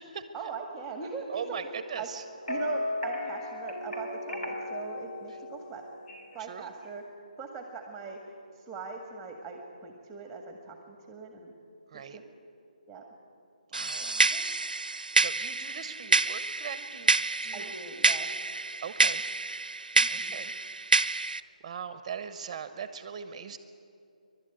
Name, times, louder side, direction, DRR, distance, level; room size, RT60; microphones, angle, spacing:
voice 1, 0.3-1.7 2.0-2.1 2.5-5.8 6.3-7.0 7.4-8.2 8.5-11.5 12.1-12.2 12.9-13.0 13.8-14.5 17.5-18.3 19.9-20.4, right 4 dB, 10° right, 3 dB, 1.8 m, -41 dB
voice 2, 1.3-2.2 6.5-6.7 11.9-12.2 13.7-14.1 15.2-17.1 17.4-17.7 18.8-19.2 20.1-20.5 21.6-23.6, right 7 dB, 30° right, 11 dB, 1.0 m, -40 dB
sound 1, 2.4-6.5, left 1 dB, 90° left, 3.9 m, -35 dB
sound 2, 13.7-21.4, right 3 dB, 85° right, 0.6 m, -28 dB
28.5 x 12.0 x 9.2 m, 2.6 s
figure-of-eight pair, 145°, 4 cm